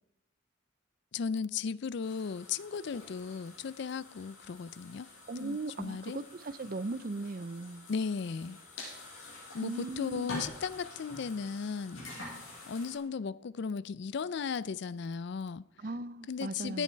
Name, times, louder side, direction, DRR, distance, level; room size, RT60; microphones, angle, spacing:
voice 1, 1.1-5.1 5.4-6.2 7.9-8.6 9.5-12.0 12.7-15.7 16.3-16.8, left 5 dB, 60° left, 0.4 m, -36 dB
sound 1, 2.0-13.0, left 2 dB, 80° left, 5.8 m, -47 dB
voice 2, 5.3-7.9 9.6-10.3 15.8-16.8, right 3 dB, 45° right, 0.5 m, -38 dB
17.0 x 9.2 x 4.5 m
head